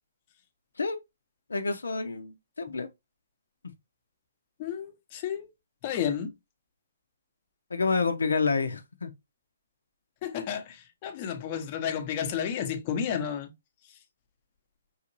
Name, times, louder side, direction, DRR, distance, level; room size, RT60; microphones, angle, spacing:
voice 1, 1.5-2.9 7.7-9.1, left 4 dB, 85° left, 0.7 m, -28 dB
voice 2, 4.6-5.5 5.8-6.3 10.2-13.5, left 8 dB, 35° left, 0.9 m, -32 dB
5.6 x 2.6 x 2.9 m
hypercardioid pair, 145°, 0 cm